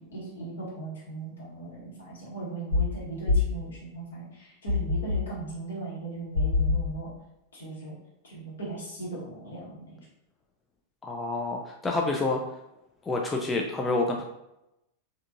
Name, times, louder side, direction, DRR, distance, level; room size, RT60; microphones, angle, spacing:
voice 1, 0.1-7.1 7.5-7.9 8.2-10.0, right 3 dB, 65° left, -5 dB, 1.3 m, -38 dB
sound 1, 2.7-2.9 3.3-3.6 4.7-5.3 6.3-6.9, left 4 dB, 85° left, 1.3 m, -24 dB
voice 2, 11.0-12.4 13.0-14.2, left 2 dB, 15° left, 1 dB, 0.3 m, -28 dB
3.5 x 2.7 x 2.4 m, 0.89 s
figure-of-eight pair, 90°, 0 cm